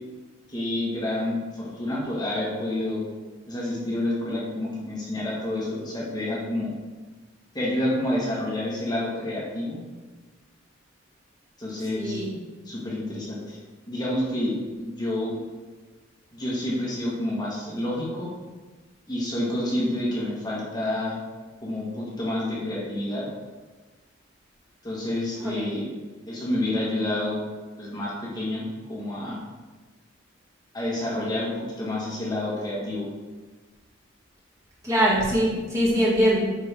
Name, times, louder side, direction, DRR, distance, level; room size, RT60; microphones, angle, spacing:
voice 1, 0.5-3.0 3.5-6.7 7.5-9.8 11.6-12.2 12.6-13.6 13.9-15.4 16.3-18.3 19.1-21.2 21.6-23.3 24.8-25.9 26.3-27.4 27.8-28.6 28.9-29.4 30.7-33.1, left 1 dB, 20° left, -6 dB, 1.4 m, -28 dB
voice 2, 11.9-12.3 25.4-25.8 34.8-36.4, equal, 15° right, -7 dB, 2.0 m, -22 dB
8.5 x 4.4 x 3.4 m, 1.3 s
head